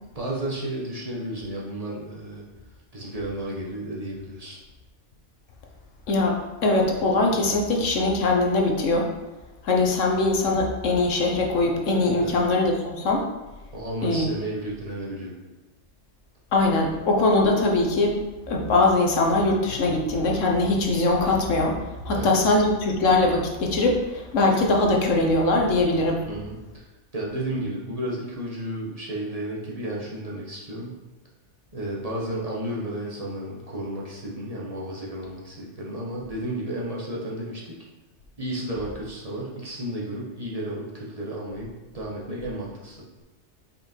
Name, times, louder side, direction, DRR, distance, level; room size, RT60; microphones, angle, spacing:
voice 1, 0.1-2.4 2.9-4.6 12.2-12.4 13.7-15.4 22.1-22.4 26.3-26.9 27.1-31.0 31.7-37.8 38.4-41.7 41.9-43.0, right 1 dB, 30° right, -5 dB, 1.4 m, -32 dB
voice 2, 6.1-9.1 9.6-13.2 14.0-14.2 16.5-18.2 18.5-26.2, left 2 dB, 85° left, 1 dB, 1.4 m, -22 dB
5.8 x 5.4 x 4.5 m, 1.1 s
omnidirectional pair, 1.3 m